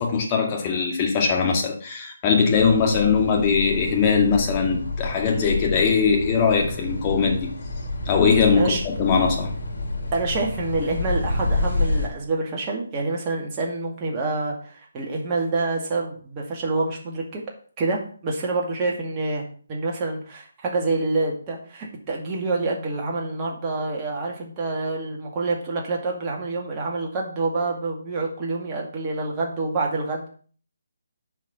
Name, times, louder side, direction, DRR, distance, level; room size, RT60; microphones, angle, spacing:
voice 1, 0.0-7.5 8.1-9.5, left 5 dB, 25° left, 2.2 m, -21 dB
sound 1, 2.5-12.1, left 2 dB, 60° left, 2.9 m, -29 dB
voice 2, 10.1-17.4 17.8-30.3, right 3 dB, 25° right, 2.2 m, -27 dB
7.1 x 5.7 x 7.0 m
figure-of-eight pair, 150°, 0 cm